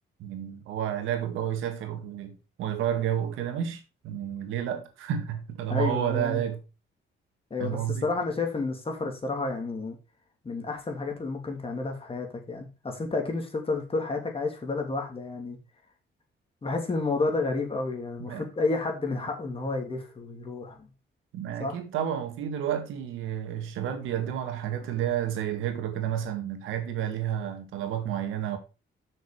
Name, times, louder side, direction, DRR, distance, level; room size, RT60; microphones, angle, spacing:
voice 1, 0.2-6.6 7.6-8.1 18.2-18.5 21.3-28.6, right 10 dB, 90° right, 1.9 m, -31 dB
voice 2, 5.7-6.4 7.5-10.0 10.4-15.6 16.6-20.9 21.6-21.7, left 3 dB, 30° left, 2.9 m, -30 dB
6.6 x 6.4 x 5.0 m
cardioid pair, 90°, 20 cm